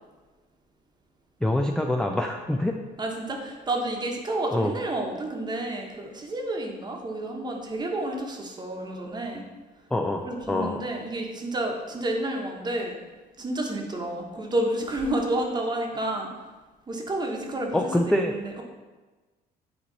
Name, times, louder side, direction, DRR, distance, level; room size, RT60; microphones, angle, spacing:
voice 1, 1.4-2.8 4.5-4.7 9.9-10.2 10.5-10.8 17.7-18.3, left 1 dB, 5° left, 3 dB, 0.3 m, -25 dB
voice 2, 3.0-9.5 10.2-13.0 13.4-16.3 16.9-18.6, right 1 dB, 25° right, 1 dB, 1.1 m, -30 dB
9.0 x 3.1 x 4.0 m, 1.3 s
cardioid pair, 110°, 17 cm